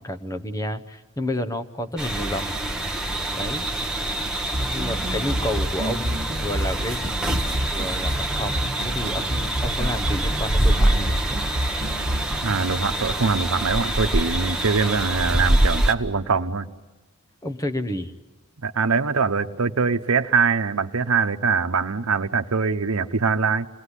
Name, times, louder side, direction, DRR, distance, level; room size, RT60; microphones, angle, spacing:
voice 1, 0.0-2.6 3.3-3.6 4.7-7.1 7.7-11.1 17.4-18.1, left 1 dB, 15° left, 8 dB, 0.9 m, -30 dB
sound 1, 2.0-15.9, right 1 dB, 5° right, 1.1 m, -25 dB
sound 2, 4.5-12.6, right 1 dB, 35° right, 1.6 m, -29 dB
voice 2, 12.4-16.7 18.6-23.7, right 5 dB, 85° right, 9 dB, 0.9 m, -23 dB
28.0 x 19.5 x 9.9 m, 1.2 s
head